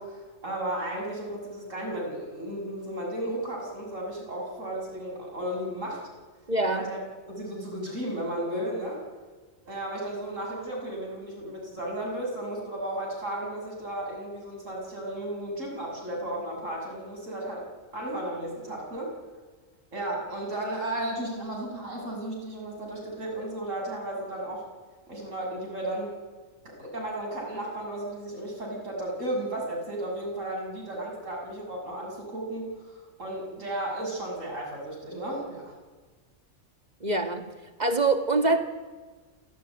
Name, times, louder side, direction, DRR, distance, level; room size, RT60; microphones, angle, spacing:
voice 1, 0.0-6.0 6.7-7.0 7.3-9.0 9.6-17.7 17.9-19.1 19.9-24.6 25.1-26.2 26.6-35.7, right 1 dB, 75° right, -1 dB, 7.1 m, -34 dB
voice 2, 6.5-6.9 37.0-37.4 37.8-38.6, right 3 dB, 35° right, 6 dB, 2.1 m, -24 dB
28.0 x 16.5 x 9.4 m, 1.4 s
omnidirectional pair, 1.3 m